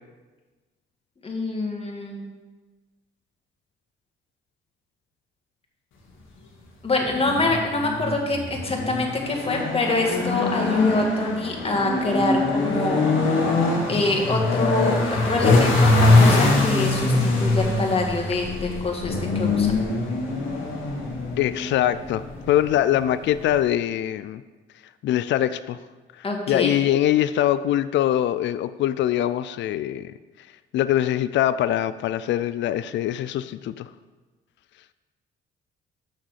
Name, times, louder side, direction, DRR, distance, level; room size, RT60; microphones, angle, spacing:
voice 1, 1.2-2.3 6.8-13.0 13.9-15.0 15.3-19.7 26.2-26.8, left 2 dB, 30° left, 0 dB, 2.0 m, -25 dB
sound 1, 7.0-23.6, left 2 dB, 85° left, 1.8 m, -23 dB
voice 2, 21.4-24.4 25.0-25.8 26.2-30.1 30.7-33.9, left 12 dB, 65° left, 14 dB, 0.4 m, -23 dB
6.5 x 6.1 x 7.4 m, 1.3 s
cardioid pair, 90°, 20 cm